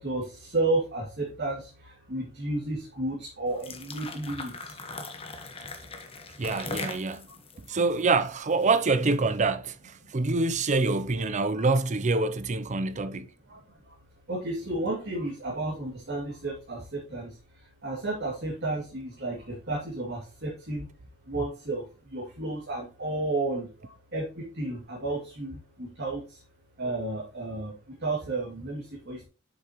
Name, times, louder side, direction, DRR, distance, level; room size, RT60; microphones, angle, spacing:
voice 1, 0.0-4.8 7.6-7.8 11.5-11.6 13.5-13.9 14.3-20.9 21.3-26.4 26.8-29.2, right 2 dB, 50° right, 2.5 m, -32 dB
sound 1, 3.5-8.7, left 3 dB, 25° left, 1.2 m, -40 dB
voice 2, 6.4-7.3 7.7-13.3, right 3 dB, 35° right, 0.5 m, -26 dB
7.9 x 6.7 x 3.0 m
head